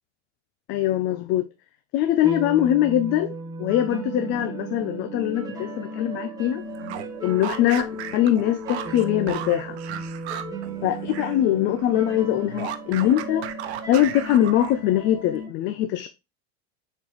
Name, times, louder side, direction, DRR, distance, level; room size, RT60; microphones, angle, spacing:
voice 1, 0.7-1.5 1.9-3.3 3.6-6.6 7.2-9.8 10.8-13.5 13.9-16.1, left 12 dB, 35° left, 0.5 m, -22 dB
sound 1, 2.2-15.5, right 2 dB, 10° right, 1.3 m, -35 dB
sound 2, 6.7-11.4 11.7-15.0, right 11 dB, 85° right, 1.0 m, -36 dB
7.0 x 4.4 x 3.0 m
supercardioid pair, 150°, 32 cm